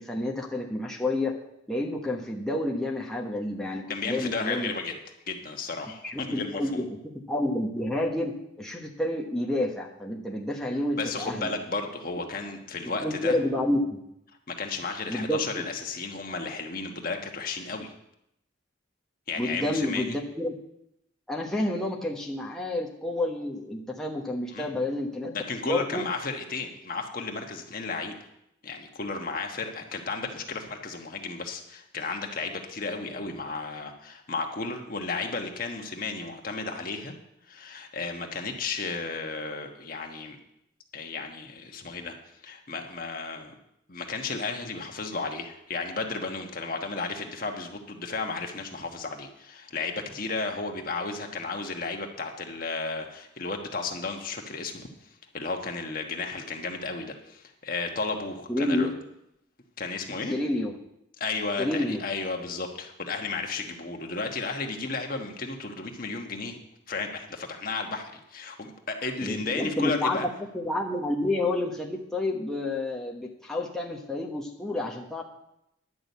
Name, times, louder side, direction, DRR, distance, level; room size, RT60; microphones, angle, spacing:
voice 1, 0.0-1.3 1.7-4.7 6.0-11.5 13.0-14.0 15.1-15.4 19.4-20.5 21.3-26.0 58.5-58.9 60.3-60.7 61.6-62.0 69.2-70.2 70.5-75.2, left 1 dB, 5° left, -3 dB, 1.0 m, -29 dB
voice 2, 3.9-4.9 5.3-6.8 11.0-13.4 14.5-17.9 19.3-20.2 24.5-24.7 25.3-28.2 28.6-37.1 37.5-40.4 40.9-42.1 42.4-43.5 43.9-54.8 55.3-58.9 59.8-60.3 61.2-66.6 66.9-70.3, left 3 dB, 45° left, 3 dB, 1.3 m, -33 dB
11.0 x 6.2 x 8.3 m, 0.79 s
head